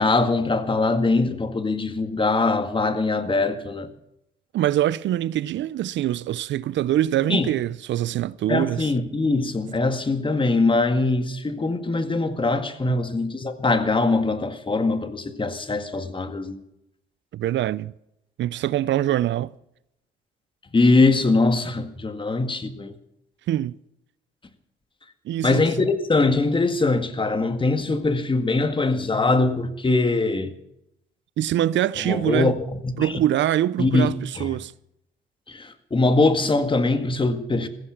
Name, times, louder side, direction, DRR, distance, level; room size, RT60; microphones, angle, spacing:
voice 1, 0.0-3.9 7.3-7.5 8.5-16.6 20.7-22.9 25.4-30.5 32.0-32.6 32.8-33.1 33.8-34.5 35.5-37.7, left 3 dB, 25° left, 1.8 m, -22 dB
voice 2, 4.5-8.9 12.9-13.0 17.3-17.9 18.4-19.5 23.5-23.8 25.3-25.6 31.4-32.5 33.0-34.7, right 12 dB, 70° right, 0.5 m, -24 dB
15.5 x 15.5 x 5.9 m
cardioid pair, 90°, 20 cm